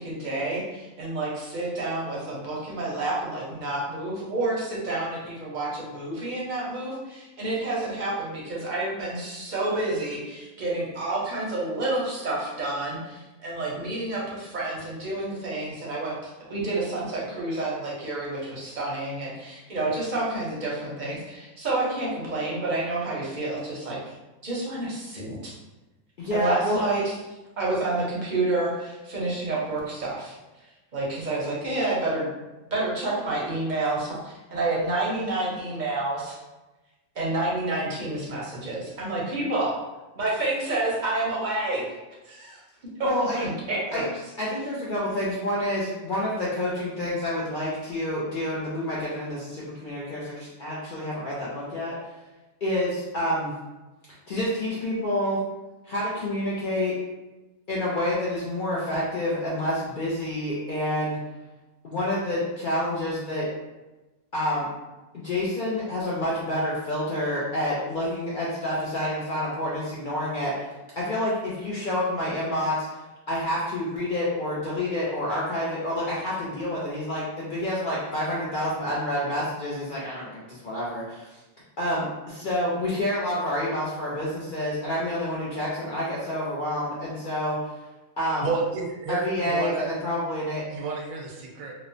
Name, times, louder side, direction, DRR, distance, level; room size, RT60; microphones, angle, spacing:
voice 1, 0.0-24.1 24.4-25.5 26.3-27.1 27.6-30.3 30.9-32.3 32.7-36.4 37.1-39.8 40.1-41.9 42.2-42.6 43.0-43.1 43.3-44.0, right 2 dB, 50° right, -5 dB, 0.6 m, -29 dB
voice 2, 26.2-26.8 43.0-43.4 43.9-44.0 44.4-52.0 52.6-53.5 54.3-55.4 55.8-56.9 57.7-61.2 61.8-63.5 64.3-64.7 65.1-73.0 73.3-81.4 81.8-87.6 88.2-88.5 89.1-90.6, left 1 dB, 60° left, -7 dB, 0.5 m, -28 dB
voice 3, 88.4-89.9 90.7-91.7, right 4 dB, 85° right, 0 dB, 1.0 m, -30 dB
2.9 x 2.0 x 2.5 m, 1.1 s
omnidirectional pair, 1.4 m